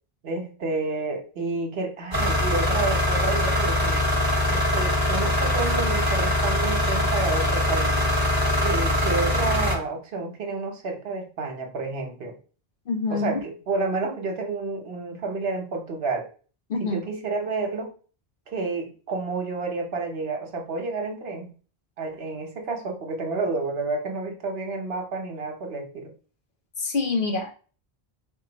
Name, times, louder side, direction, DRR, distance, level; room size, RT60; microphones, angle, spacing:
voice 1, 0.2-4.0 4.5-8.1 8.6-12.4 13.1-16.3 16.8-17.9 18.5-21.5 22.0-26.1, right 3 dB, 75° right, 3 dB, 1.1 m, -30 dB
sound 1, 2.1-9.8, left 1 dB, 25° right, 0.9 m, -23 dB
voice 2, 12.9-13.4 16.7-17.0 26.8-27.5, left 3 dB, 60° left, 3 dB, 0.9 m, -26 dB
4.5 x 2.4 x 3.9 m, 0.38 s
omnidirectional pair, 1.0 m